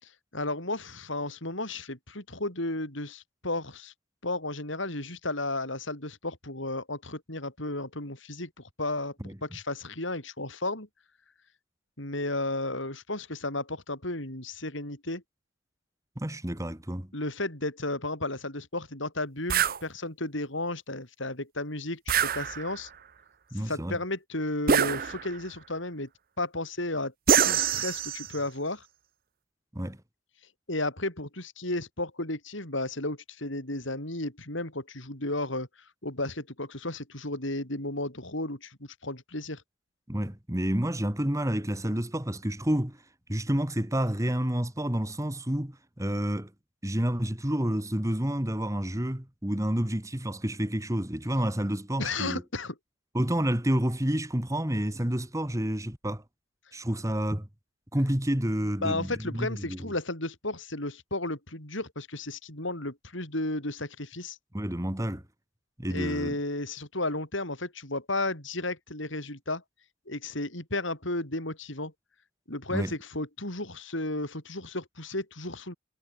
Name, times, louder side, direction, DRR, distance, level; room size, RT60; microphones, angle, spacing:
voice 1, 0.0-3.9 4.2-8.5 8.8-9.2 9.4-10.9 12.0-15.2 17.1-22.9 23.6-26.1 26.4-27.1 27.4-28.9 30.7-35.7 36.0-39.6 52.0-52.7 58.8-64.4 65.9-69.6 70.1-71.9 72.5-75.7, left 2 dB, 65° left, 6.9 m, -33 dB
voice 2, 16.2-17.1 23.5-24.0 29.7-30.0 40.1-43.0 43.3-46.5 46.8-52.4 53.1-56.2 56.7-57.5 57.9-59.9 64.5-65.2 65.8-66.4 72.7-72.9, equal, 15° right, 1.9 m, -29 dB
sound 1, 19.5-19.8 22.1-22.9 24.7-25.5 27.3-28.4, right 7 dB, 45° right, 0.9 m, -25 dB
head